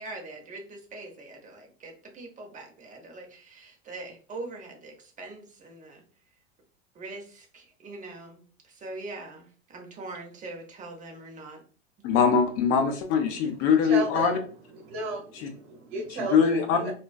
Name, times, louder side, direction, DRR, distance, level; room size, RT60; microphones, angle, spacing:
voice 1, 0.0-6.0 6.9-11.6, right 2 dB, 25° right, 2 dB, 0.8 m, -42 dB
voice 2, 12.0-14.4 15.3-15.5 16.1-16.9, left 6 dB, 45° left, 6 dB, 0.6 m, -23 dB
voice 3, 13.8-14.3 14.8-16.9, right 3 dB, 65° right, 1 dB, 1.0 m, -34 dB
2.3 x 2.3 x 2.3 m, 0.40 s
hypercardioid pair, 95°, 33 cm